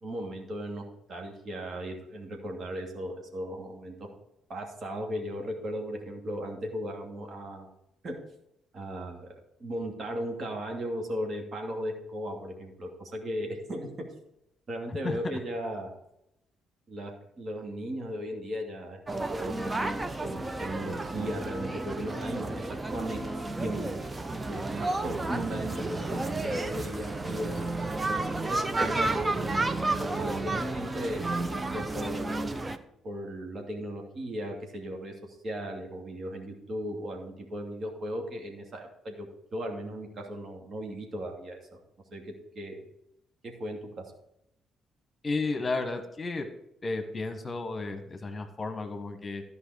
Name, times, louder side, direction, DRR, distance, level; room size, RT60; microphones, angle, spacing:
voice 1, 0.0-4.1 4.5-7.7 8.0-8.2 8.7-9.3 9.6-14.1 14.7-15.9 16.9-23.2 23.6-23.9 24.5-27.6 28.1-29.7 30.0-32.4 33.0-41.6 42.1-42.9 43.6-44.0, equal, 45° right, 2 dB, 2.5 m, -37 dB
sound 1, 19.1-32.8, right 2 dB, 20° right, 0.9 m, -31 dB
voice 2, 45.2-46.5 46.8-49.4, left 3 dB, 30° left, 7 dB, 1.5 m, -33 dB
14.0 x 5.6 x 4.9 m, 0.81 s
figure-of-eight pair, 45°, 0 cm